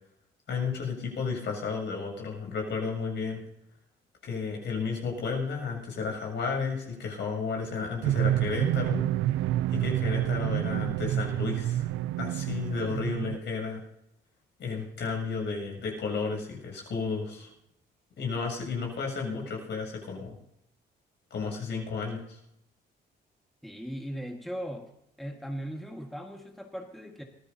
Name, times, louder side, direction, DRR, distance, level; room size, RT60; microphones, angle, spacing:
voice 1, 0.5-3.4 4.2-9.0 9.7-11.9 12.2-13.8 14.6-17.5 18.2-20.4 21.3-22.4, left 5 dB, 65° left, 0 dB, 7.9 m, -32 dB
sound 1, 8.0-13.4, right 13 dB, 90° right, 0.4 m, -28 dB
voice 2, 23.6-24.9 25.2-27.2, equal, ahead, 2 dB, 1.7 m, -38 dB
23.5 x 16.5 x 2.8 m, 0.82 s
cardioid pair, 90°, 20 cm